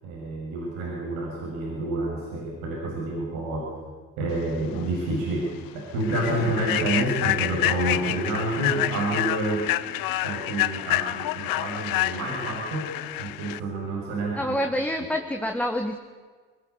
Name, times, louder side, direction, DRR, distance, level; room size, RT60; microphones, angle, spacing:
voice 1, 0.0-3.7 4.2-9.7 10.2-14.6, right 2 dB, 75° right, -4 dB, 7.3 m, -28 dB
Human voice / Train, 4.7-4.9 5.3-5.5 6.0-13.6, left 17 dB, 60° left, 0.8 m, -28 dB
voice 2, 14.4-16.0, equal, 5° left, 4 dB, 1.8 m, -27 dB
22.5 x 20.0 x 8.4 m, 1.5 s
hypercardioid pair, 60°, 39 cm